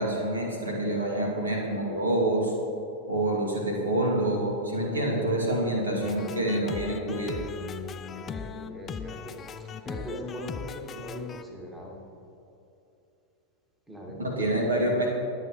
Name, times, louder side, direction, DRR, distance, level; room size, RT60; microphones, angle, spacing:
voice 1, 0.0-2.5 3.1-7.4 14.2-15.1, right 1 dB, 75° right, -2 dB, 2.5 m, -27 dB
sound 1, 6.0-11.4, left 6 dB, 25° left, 0.4 m, -38 dB
voice 2, 8.1-12.0 13.9-15.0, equal, 10° right, -1 dB, 2.0 m, -41 dB
21.0 x 8.2 x 3.2 m, 2.9 s
figure-of-eight pair, 90°, 0 cm